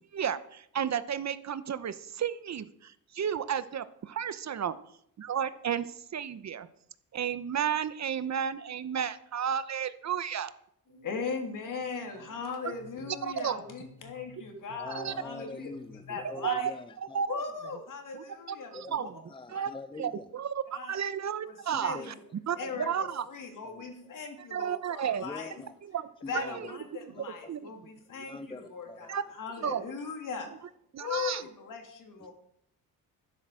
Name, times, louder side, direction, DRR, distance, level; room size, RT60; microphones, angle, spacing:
voice 1, 0.1-4.7 5.2-6.7 7.1-10.5 12.6-12.7 13.1-13.6 14.9-15.1 16.4-16.5 17.1-17.4 18.1-19.1 19.5-19.7 20.0-22.0 22.5-23.2 24.4-25.2 25.9-26.1 26.3-26.7 27.5-27.7 29.1-29.2 29.6-29.8 30.9-31.4, right 8 dB, 50° right, 14 dB, 0.9 m, -32 dB
sound 1, 10.8-16.5, left 4 dB, 45° left, 3.4 m, -55 dB
voice 2, 11.0-15.7 16.1-16.7 17.3-19.1 19.5-19.6 20.7-20.9 21.5-22.2 22.5-25.5 26.3-30.5 31.0-32.3, left 5 dB, 60° left, 4 dB, 3.2 m, -39 dB
voice 3, 14.8-17.2 18.7-19.0 19.3-20.3 21.7-22.1 22.6-22.7 23.6-23.9 25.2-25.7 26.2-26.7 27.2-27.5 28.1-29.2 32.2-32.3, left 3 dB, 15° left, 10 dB, 0.7 m, -44 dB
11.5 x 10.5 x 7.6 m, 0.73 s
cardioid pair, 95°, 36 cm